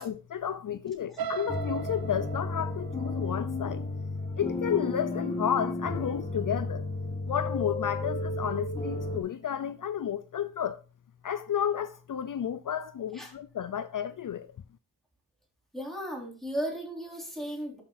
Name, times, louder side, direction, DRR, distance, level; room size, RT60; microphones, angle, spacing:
voice 1, 0.0-3.8 4.4-6.9 7.3-10.8 11.2-14.5, left 9 dB, 55° left, 0.5 m, -32 dB
sound 1, 1.2-5.1 5.6-5.9 6.3-6.4, right 7 dB, 65° right, 0.6 m, -39 dB
sound 2, 1.5-9.2, left 2 dB, 15° left, 1.6 m, -33 dB
voice 2, 15.7-17.8, equal, ahead, 4.5 m, -35 dB
12.5 x 5.7 x 2.6 m
cardioid pair, 55°, 38 cm